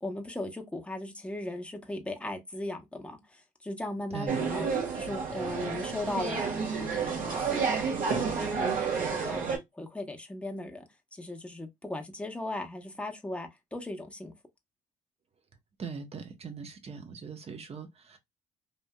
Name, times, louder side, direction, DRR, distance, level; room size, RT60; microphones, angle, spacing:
voice 1, 0.0-9.5 9.7-14.3, left 2 dB, 5° left, 0.9 m, -38 dB
sound 1, 4.3-9.6, right 5 dB, 60° right, 1.6 m, -30 dB
voice 2, 15.8-18.2, right 5 dB, 40° right, 1.0 m, -41 dB
3.4 x 2.6 x 2.2 m
supercardioid pair, 65°, 16 cm